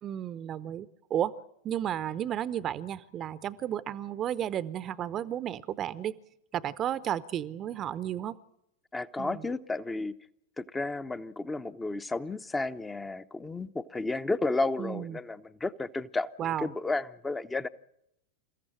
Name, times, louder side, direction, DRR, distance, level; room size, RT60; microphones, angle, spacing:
voice 1, 0.0-1.3 1.6-6.1 6.5-8.4 9.2-9.4 14.8-15.2 16.4-16.7, right 10 dB, 30° right, 0.8 m, -33 dB
voice 2, 8.9-10.2 10.6-17.7, left 3 dB, 10° left, 0.8 m, -32 dB
28.5 x 15.0 x 8.9 m
figure-of-eight pair, 90°, 0 cm